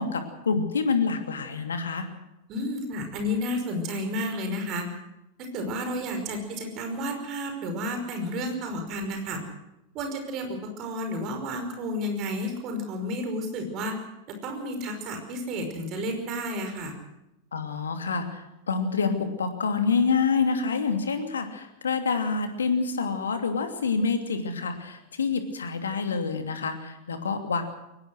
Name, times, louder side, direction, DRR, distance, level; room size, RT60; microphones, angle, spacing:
voice 1, 0.0-2.1 17.5-27.6, left 5 dB, 70° left, 6 dB, 2.7 m, -27 dB
voice 2, 2.5-4.9 5.4-9.4 9.9-13.9 14.3-17.0, equal, 35° right, 5 dB, 5.4 m, -31 dB
22.5 x 19.5 x 6.4 m, 0.90 s
figure-of-eight pair, 90°, 0 cm